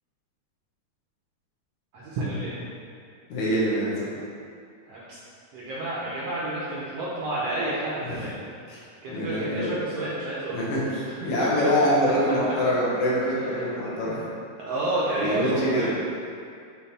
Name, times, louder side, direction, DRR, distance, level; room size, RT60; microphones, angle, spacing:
voice 1, 1.9-2.6 4.9-5.2 5.5-8.4 9.0-10.7 11.4-11.7 13.3-14.2 14.7-15.9, right 1 dB, 75° right, -8 dB, 1.5 m, -30 dB
voice 2, 3.3-3.9 8.0-8.3 8.7-8.8 9.1-9.7 10.5-14.2 15.2-15.9, equal, 70° left, -7 dB, 2.4 m, -25 dB
7.3 x 3.2 x 4.2 m, 2.3 s
omnidirectional pair, 3.7 m